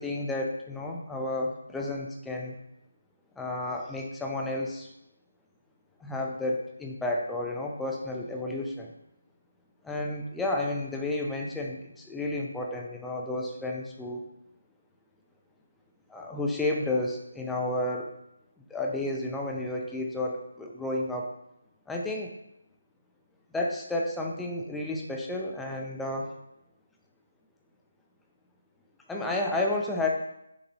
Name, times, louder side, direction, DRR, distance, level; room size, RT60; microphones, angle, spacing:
voice 1, 0.0-2.6 3.4-4.9 6.0-8.9 9.8-14.2 16.1-18.1 18.7-21.3 21.9-22.3 23.5-26.3 29.1-30.1, left 2 dB, 5° left, -1 dB, 0.6 m, -31 dB
6.5 x 4.0 x 4.1 m, 0.83 s
figure-of-eight pair, 155°, 0 cm